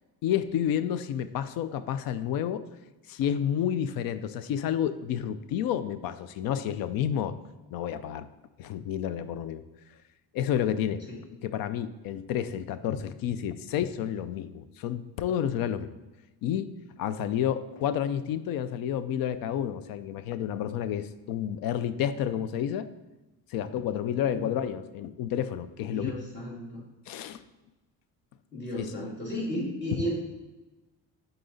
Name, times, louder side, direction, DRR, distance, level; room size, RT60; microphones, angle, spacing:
voice 1, 0.2-2.6 3.1-7.3 7.7-8.3 8.6-9.6 10.3-11.0 11.4-15.9 16.4-16.7 17.0-22.9 23.5-26.1 27.1-27.4 28.8-28.9 29.9-30.1, left 9 dB, 75° left, 13 dB, 0.5 m, -30 dB
voice 2, 25.9-26.9 28.5-30.2, equal, 30° left, -4 dB, 1.9 m, -34 dB
7.7 x 4.0 x 4.0 m, 1.1 s
cardioid pair, 125°, 35 cm